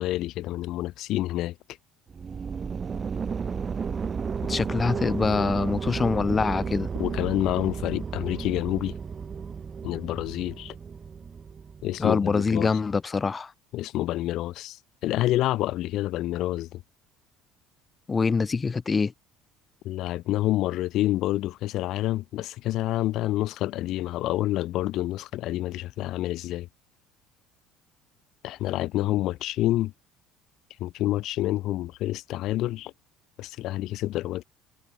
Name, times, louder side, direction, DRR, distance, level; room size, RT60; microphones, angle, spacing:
voice 1, 0.0-1.5 7.0-8.9 9.8-10.7 11.8-12.7 13.7-14.8 15.0-16.8 19.8-26.7 28.4-29.9 30.8-32.9 33.4-34.4, left 15 dB, 60° left, 2.5 m, -28 dB
sound 1, 2.1-12.0, right 6 dB, 25° right, 1.2 m, -33 dB
voice 2, 4.5-6.9 12.0-13.5 18.1-19.1, left 5 dB, 20° left, 2.5 m, -25 dB
cardioid pair, 130°, 0 cm